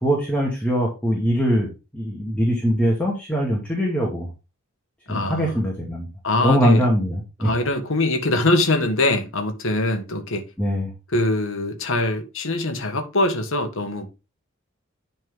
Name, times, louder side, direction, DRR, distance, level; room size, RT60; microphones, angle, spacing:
voice 1, 0.0-4.3 5.1-6.1 6.4-7.5 10.6-10.9, equal, 5° left, 2.3 m, -22 dB
voice 2, 5.1-5.6 6.2-6.9 7.4-10.4 11.1-14.1, left 2 dB, 70° left, 1.6 m, -23 dB
11.0 x 4.5 x 3.6 m
head